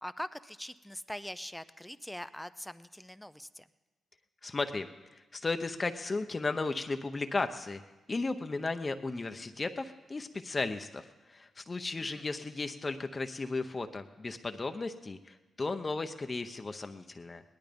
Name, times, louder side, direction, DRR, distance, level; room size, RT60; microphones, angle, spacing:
voice 1, 0.0-3.7 12.0-12.3, left 1 dB, 5° left, 14 dB, 0.6 m, -43 dB
voice 2, 4.4-7.8 8.1-17.4, left 3 dB, 35° left, 7 dB, 0.8 m, -35 dB
18.0 x 11.5 x 5.2 m, 1.1 s
cardioid pair, 60°, 0 cm